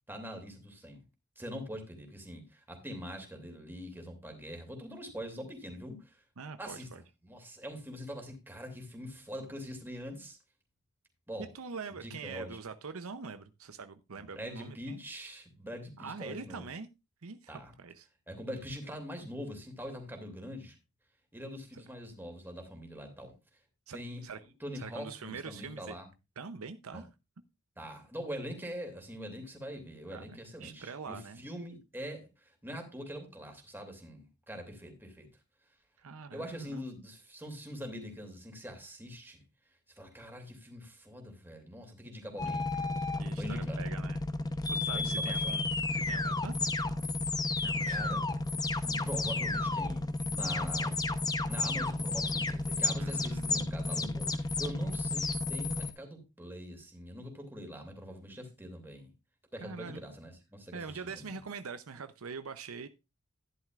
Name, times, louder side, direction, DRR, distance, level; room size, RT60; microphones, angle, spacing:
voice 1, 0.1-1.0 1.4-6.2 6.6-6.9 7.2-10.4 11.3-11.5 12.0-12.6 14.2-16.7 17.5-17.7 18.3-20.7 21.3-23.3 23.9-24.2 24.6-26.1 26.9-27.0 27.8-35.3 36.3-39.4 40.0-42.9 43.4-43.8 44.9-45.6 47.9-48.2 48.8-51.1 51.5-59.1 59.5-61.4, equal, 10° right, 2.7 m, -43 dB
voice 2, 6.4-7.0 11.4-15.0 16.0-16.9 17.2-18.1 21.7-21.8 23.9-24.4 24.7-26.0 26.4-27.1 30.1-31.4 36.0-36.8 43.2-44.2 44.7-46.7 47.6-48.2 53.0-54.2 54.8-55.0 59.6-60.0 60.7-62.9, right 5 dB, 70° right, 0.7 m, -44 dB
sound 1, 42.4-55.9, left 2 dB, 20° left, 0.8 m, -32 dB
12.5 x 10.5 x 2.5 m
head